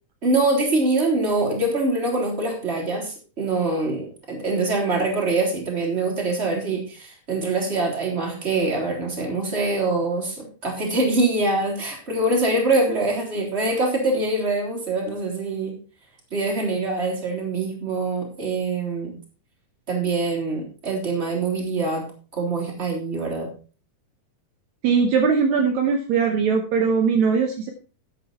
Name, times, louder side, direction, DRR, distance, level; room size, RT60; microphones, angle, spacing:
voice 1, 0.2-15.7 16.3-19.1 19.9-22.0 22.3-23.5, right 2 dB, 20° right, 0 dB, 3.3 m, -24 dB
voice 2, 24.8-27.7, right 5 dB, 70° right, 4 dB, 2.2 m, -20 dB
11.0 x 8.2 x 4.2 m, 0.35 s
omnidirectional pair, 3.6 m